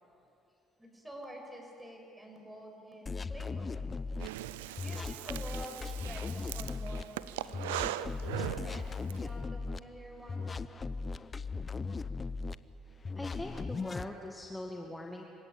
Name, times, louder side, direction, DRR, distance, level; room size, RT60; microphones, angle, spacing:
voice 1, 0.8-3.8 4.8-8.0 8.4-10.5, equal, 10° right, 1 dB, 6.8 m, -48 dB
sound 1, 3.1-4.3 4.8-7.0 7.5-9.8 10.3-12.6 13.0-14.1, left 4 dB, 30° left, 0.8 m, -38 dB
Breathing, 4.2-9.2, right 14 dB, 90° right, 0.6 m, -39 dB
voice 2, 8.4-8.7 10.9-11.0 12.0-12.2 13.2-15.2, left 1 dB, 10° left, 2 dB, 2.0 m, -43 dB
27.0 x 16.5 x 8.8 m, 2.8 s
supercardioid pair, 70°, 0 cm